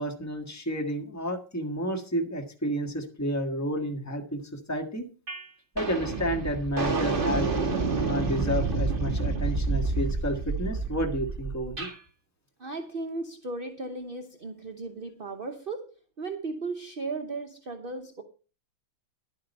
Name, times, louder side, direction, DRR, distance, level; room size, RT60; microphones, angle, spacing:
voice 1, 0.0-5.1 5.7-7.5 8.0-11.9, equal, 10° left, 3 dB, 1.5 m, -31 dB
sound 1, 5.3-5.5 5.8-12.0, right 3 dB, 25° right, 2.0 m, -29 dB
voice 2, 12.6-18.2, right 3 dB, 45° right, 4 dB, 0.7 m, -36 dB
11.0 x 8.7 x 5.4 m, 0.36 s
omnidirectional pair, 2.2 m